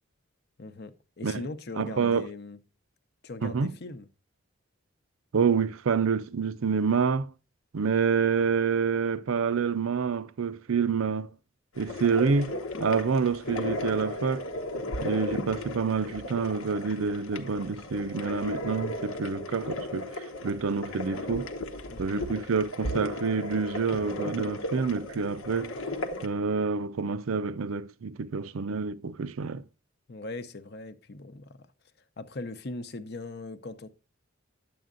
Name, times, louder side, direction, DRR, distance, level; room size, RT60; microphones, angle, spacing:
voice 1, 0.6-2.6 3.2-4.1 21.9-22.3 30.1-31.6 32.2-33.9, left 2 dB, 50° left, 0.7 m, -40 dB
voice 2, 1.8-2.2 3.4-3.7 5.3-7.3 7.7-11.3 11.8-12.5 12.8-14.5 15.0-21.5 22.0-25.7 26.2-29.6, right 5 dB, 80° right, 0.5 m, -27 dB
sound 1, 11.8-26.3, left 1 dB, 90° left, 1.0 m, -36 dB
10.5 x 7.7 x 2.5 m
head